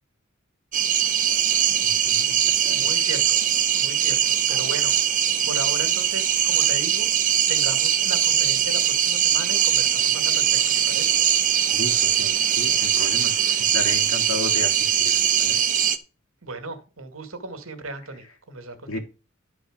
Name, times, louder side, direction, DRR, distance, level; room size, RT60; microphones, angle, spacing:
sound 1, 0.7-16.0, right 9 dB, 40° right, 0.9 m, -21 dB
voice 1, 1.8-2.8 11.7-15.6 18.9-19.0, left 2 dB, 85° left, 5 dB, 2.7 m, -34 dB
voice 2, 2.7-3.4 3.7-4.9 5.5-7.1 7.5-10.6 10.9-11.2 16.4-19.0, right 3 dB, 75° right, 8 dB, 2.2 m, -36 dB
12.0 x 4.9 x 6.6 m, 0.32 s
head